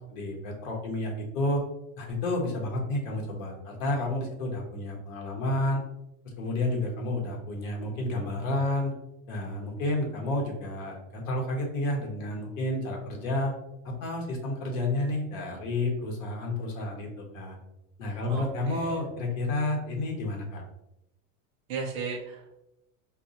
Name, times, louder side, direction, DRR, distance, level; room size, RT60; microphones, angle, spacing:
voice 1, 0.1-1.6 2.0-5.8 6.4-8.9 9.3-13.5 13.8-17.6 18.0-20.6, left 1 dB, 65° left, 1 dB, 1.1 m, -30 dB
voice 2, 18.3-18.9 21.7-22.6, right 5 dB, 25° right, -1 dB, 0.4 m, -36 dB
4.3 x 2.4 x 2.7 m, 0.86 s
supercardioid pair, 170°, 42 cm